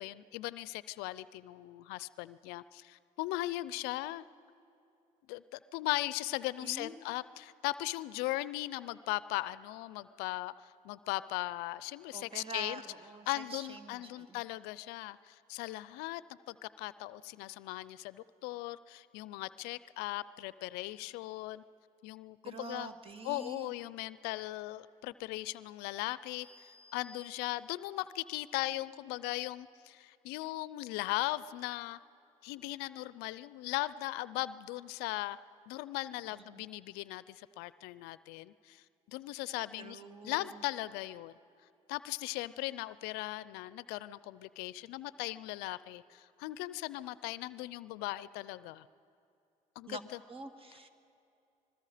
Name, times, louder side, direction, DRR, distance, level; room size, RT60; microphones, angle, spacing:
voice 1, 0.0-4.2 5.3-10.5 10.8-12.8 13.3-16.2 16.5-21.6 22.0-22.9 23.2-26.5 26.9-32.0 32.4-35.4 35.7-38.8 39.1-41.3 41.9-48.8 49.8-50.2, left 18 dB, 80° left, 17 dB, 0.5 m, -38 dB
voice 2, 6.6-7.0 12.1-14.4 22.4-23.7 36.5-36.6 39.8-40.6 49.9-50.0 50.3-50.9, right 2 dB, 35° right, 8 dB, 2.0 m, -46 dB
sound 1, 26.3-28.1, left 4 dB, 10° left, 3.8 m, -58 dB
26.5 x 21.5 x 5.0 m, 2.7 s
hypercardioid pair, 60°, 16 cm